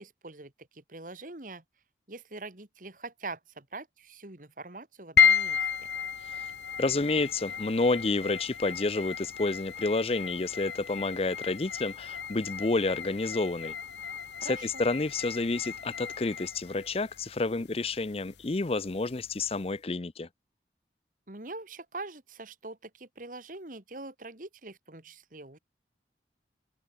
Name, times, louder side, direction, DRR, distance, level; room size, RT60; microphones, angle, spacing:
voice 1, 0.0-1.6 2.1-5.7 14.4-14.9 21.3-25.6, right 3 dB, 50° right, 2.1 m, -43 dB
sound 1, 5.2-19.6, left 7 dB, 80° left, 1.2 m, -33 dB
voice 2, 6.8-13.7 14.4-20.3, left 3 dB, 35° left, 0.6 m, -29 dB
head